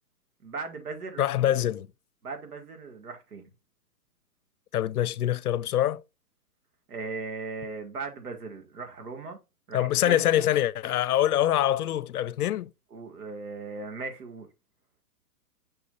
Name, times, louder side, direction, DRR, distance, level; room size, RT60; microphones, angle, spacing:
voice 1, 0.4-1.6 2.2-3.5 6.9-9.4 9.7-10.4 12.9-14.5, right 4 dB, 80° right, 2.2 m, -38 dB
voice 2, 1.2-1.9 4.7-6.0 9.7-12.7, left 12 dB, 70° left, 0.6 m, -24 dB
6.5 x 6.1 x 2.6 m
hypercardioid pair, 140°, 46 cm